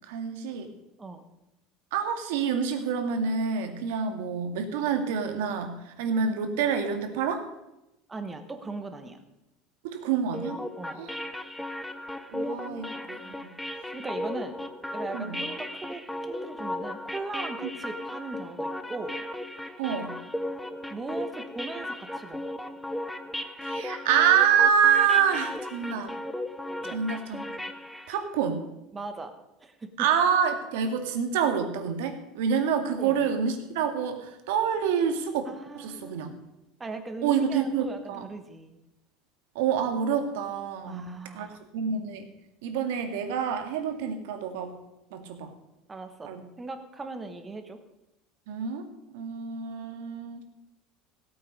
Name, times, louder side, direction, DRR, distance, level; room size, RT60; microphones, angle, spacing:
voice 1, 0.1-0.7 1.9-7.5 9.8-10.6 11.0-11.2 12.3-13.5 15.1-15.4 19.8-20.1 23.6-26.1 26.9-27.6 28.1-28.6 30.0-35.4 35.7-36.3 37.2-38.2 39.6-41.5 41.7-42.3 42.6-44.7 45.1-45.5 46.2-46.4 48.5-48.9 49.1-50.4, right 7 dB, 90° right, 6 dB, 2.1 m, -27 dB
voice 2, 8.1-9.2 10.8-11.0 13.9-14.6 14.9-19.2 20.9-22.5 26.8-27.0 28.9-29.3 29.6-29.9 33.0-33.3 35.4-36.4 36.8-38.8 40.8-41.6 45.9-46.3 46.6-47.8, right 3 dB, 15° right, 8 dB, 1.2 m, -39 dB
sound 1, 10.3-28.2, left 1 dB, 5° left, 0.7 m, -36 dB
17.0 x 8.5 x 5.4 m, 0.90 s
cardioid pair, 165°, 0 cm